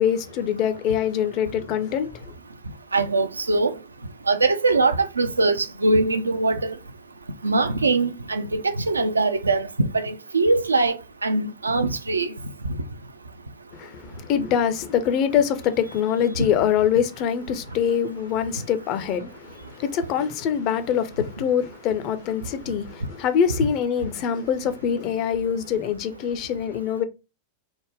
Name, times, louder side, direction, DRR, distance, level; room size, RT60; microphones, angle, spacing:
voice 1, 0.0-2.3 13.7-27.0, left 8 dB, 40° left, 0.4 m, -24 dB
voice 2, 2.9-3.8 4.3-6.8 7.4-12.3, right 3 dB, 75° right, 0.3 m, -22 dB
3.4 x 2.1 x 3.2 m
figure-of-eight pair, 90°, 0 cm